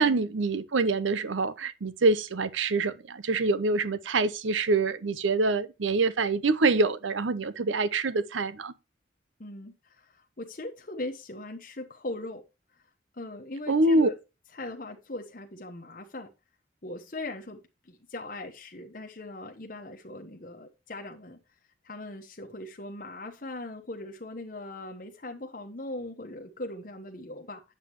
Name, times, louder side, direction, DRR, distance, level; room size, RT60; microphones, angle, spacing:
voice 1, 0.0-8.7 13.7-14.1, right 3 dB, 85° right, 0.7 m, -25 dB
voice 2, 9.4-12.4 13.1-14.2 14.5-16.3 16.8-17.6 17.9-21.4 21.8-27.7, left 2 dB, 45° left, 1.1 m, -40 dB
8.2 x 8.0 x 3.0 m
head